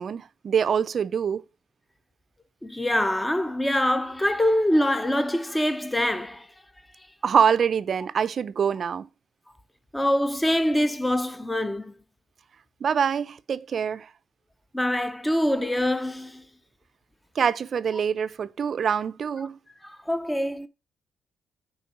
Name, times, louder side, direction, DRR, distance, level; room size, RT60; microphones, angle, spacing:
voice 1, 0.0-1.4 7.2-9.1 12.8-14.1 17.4-19.6, right 7 dB, 50° right, 0.5 m, -25 dB
voice 2, 2.6-6.5 9.9-11.9 14.7-16.4 19.8-20.7, left 1 dB, 10° left, 0.7 m, -24 dB
9.6 x 3.8 x 5.0 m
cardioid pair, 90°, 0 cm